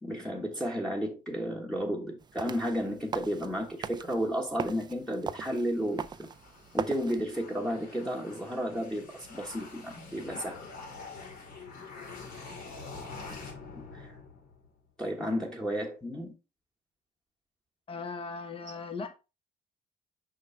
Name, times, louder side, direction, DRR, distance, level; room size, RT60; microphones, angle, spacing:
voice 1, 0.0-6.1 6.7-10.6 13.7-14.1 15.0-16.3, equal, 5° left, 1.4 m, -33 dB
sound 1, 2.2-7.2, right 6 dB, 25° right, 0.4 m, -39 dB
sound 2, 5.4-14.8, left 4 dB, 60° left, 2.7 m, -46 dB
voice 2, 17.9-19.1, left 4 dB, 35° left, 1.2 m, -39 dB
6.4 x 5.5 x 3.3 m
cardioid pair, 110°, 17 cm